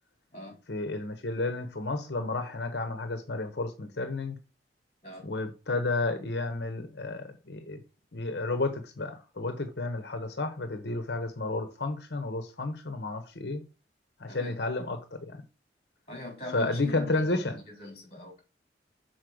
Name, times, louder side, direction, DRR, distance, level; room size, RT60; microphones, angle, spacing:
voice 1, 0.7-4.4 5.2-7.8 8.1-13.6 14.2-15.4 16.5-17.6, left 2 dB, 75° left, 0.9 m, -32 dB
voice 2, 14.3-14.6 16.1-18.4, left 2 dB, 35° left, 4.1 m, -42 dB
6.4 x 4.3 x 6.2 m
head